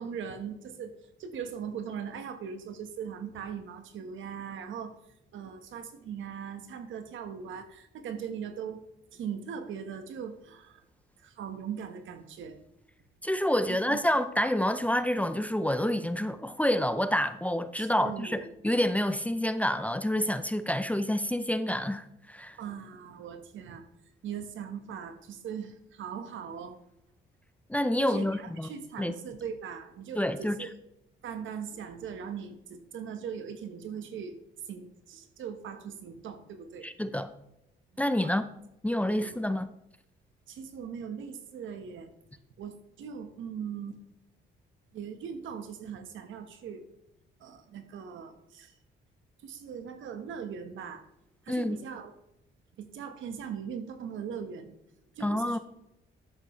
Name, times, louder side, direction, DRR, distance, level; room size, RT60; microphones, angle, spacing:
voice 1, 0.0-4.9 5.3-8.8 9.1-10.8 11.2-12.6 13.7-14.0 17.8-18.5 22.6-23.8 24.2-26.8 28.0-30.7 31.2-34.3 34.7-36.9 38.2-38.3 39.1-39.4 40.5-42.1 42.6-44.0 44.9-46.8 47.4-48.7 49.4-51.0 51.4-52.1 52.8-54.8 55.1-55.6, right 7 dB, 75° right, 1.3 m, -40 dB
voice 2, 13.2-22.6 27.7-28.7 29.0-29.1 30.1-30.7 36.8-37.3 38.0-38.4 38.8-39.7 51.5-51.8 55.2-55.6, left 1 dB, 5° left, 0.6 m, -28 dB
11.5 x 7.9 x 3.2 m
cardioid pair, 90°, 20 cm